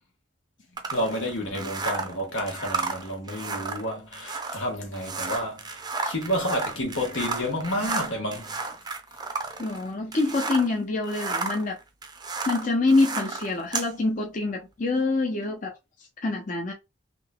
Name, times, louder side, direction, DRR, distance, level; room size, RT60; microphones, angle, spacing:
sound 1, 0.8-10.8 11.0-13.9, right 4 dB, 20° right, 0.6 m, -33 dB
voice 1, 0.9-8.6, equal, 85° left, 1.6 m, -30 dB
voice 2, 9.6-11.8 12.5-15.8 16.2-16.7, left 3 dB, 45° left, 0.7 m, -25 dB
3.7 x 2.8 x 2.2 m
head